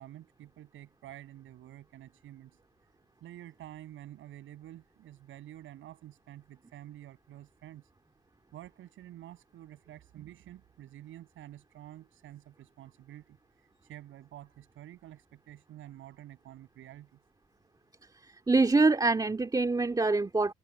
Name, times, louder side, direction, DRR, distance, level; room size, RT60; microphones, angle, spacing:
voice 1, 0.0-2.6 3.2-7.9 8.5-17.2, right 13 dB, 80° right, 7.6 m, -49 dB
voice 2, 18.2-20.5, right 3 dB, 20° right, 2.2 m, -25 dB
cardioid pair, 90°, 20 cm